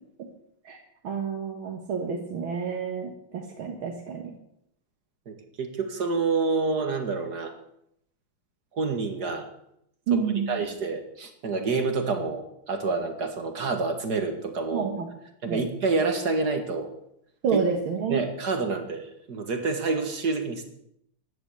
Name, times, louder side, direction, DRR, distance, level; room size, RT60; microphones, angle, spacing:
voice 1, 0.7-4.3 10.1-10.6 14.7-15.1 15.5-15.6 17.4-18.2, right 6 dB, 75° right, 1 dB, 2.4 m, -29 dB
voice 2, 5.3-7.5 8.7-9.5 10.1-10.2 10.5-14.9 15.4-16.9 17.5-17.6 18.1-20.6, right 4 dB, 50° right, 6 dB, 2.3 m, -28 dB
15.5 x 11.0 x 6.9 m, 0.75 s
omnidirectional pair, 2.3 m